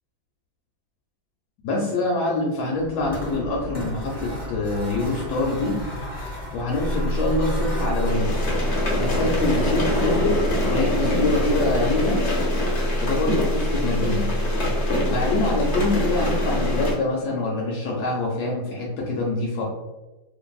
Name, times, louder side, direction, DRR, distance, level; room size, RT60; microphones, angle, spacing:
voice 1, 1.6-5.8 6.5-8.5 8.9-10.4 10.7-12.2 13.0-14.3 15.0-19.6, left 2 dB, 75° left, -2 dB, 1.1 m, -25 dB
sound 1, 2.8-12.1, left 1 dB, 15° left, 0.5 m, -35 dB
sound 2, 6.8-16.9, equal, 30° right, 0.8 m, -26 dB
sound 3, 8.0-16.9, left 1 dB, 55° left, 0.8 m, -26 dB
2.5 x 2.5 x 2.3 m, 1.1 s
omnidirectional pair, 1.8 m